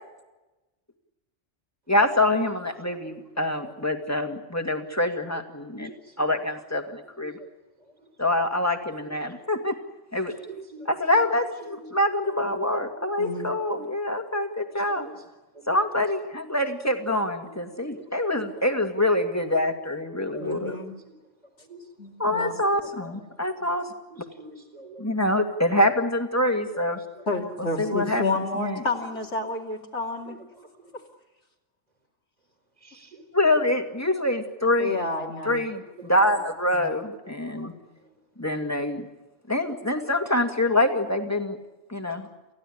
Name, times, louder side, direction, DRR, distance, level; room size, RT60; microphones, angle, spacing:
voice 1, 1.9-5.9 6.2-7.3 8.2-9.8 10.1-10.3 10.9-15.1 15.7-20.7 22.2-23.9 25.0-27.0 27.8-28.8 33.3-34.9 35.4-37.7 38.4-39.0 39.5-41.6 41.9-42.3, left 1 dB, 10° left, 5 dB, 2.3 m, -25 dB
voice 2, 10.3-10.9 11.7-11.8 14.9-15.2 17.8-18.0 20.3-20.7 21.7-21.8 22.7-22.9 24.1-25.0 27.2-27.3 30.3-30.4 32.8-33.1 36.0-36.1 37.6-37.7, right 3 dB, 30° right, 4 dB, 4.1 m, -44 dB
voice 3, 13.2-13.5 20.4-21.0 22.0-22.5 27.3-30.4 30.9-31.0 34.8-35.6, left 2 dB, 65° left, -1 dB, 3.1 m, -30 dB
29.0 x 15.5 x 9.9 m, 1.1 s
omnidirectional pair, 1.3 m